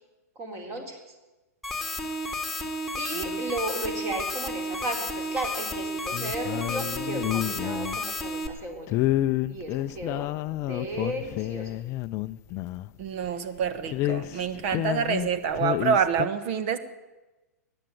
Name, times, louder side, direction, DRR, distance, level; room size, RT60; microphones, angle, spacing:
voice 1, 0.4-1.0 3.0-8.9 9.5-11.7, right 2 dB, 30° right, 4 dB, 3.8 m, -34 dB
sound 1, 1.6-8.5, left 1 dB, ahead, 1.9 m, -32 dB
voice 2, 3.1-3.4 13.0-16.8, right 7 dB, 50° right, 12 dB, 1.4 m, -27 dB
sound 2, 6.1-8.0 8.9-12.9 13.2-13.3 13.6-15.3 15.5-16.3, left 15 dB, 35° left, 0.5 m, -29 dB
15.0 x 10.0 x 9.2 m, 1.1 s
figure-of-eight pair, 105°, 9 cm